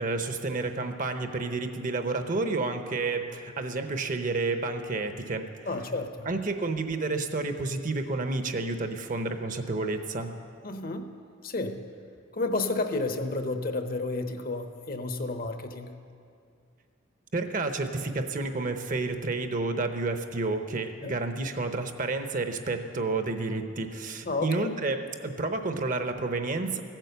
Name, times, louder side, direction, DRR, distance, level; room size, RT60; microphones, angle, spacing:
voice 1, 0.0-5.5 6.2-10.3 17.3-26.8, right 3 dB, 45° right, 7 dB, 0.8 m, -30 dB
voice 2, 5.7-6.3 10.6-11.1 11.4-11.8 12.3-15.9 21.0-21.2 24.2-24.7, left 2 dB, 50° left, 7 dB, 0.8 m, -31 dB
15.5 x 9.0 x 6.8 m, 2.3 s
head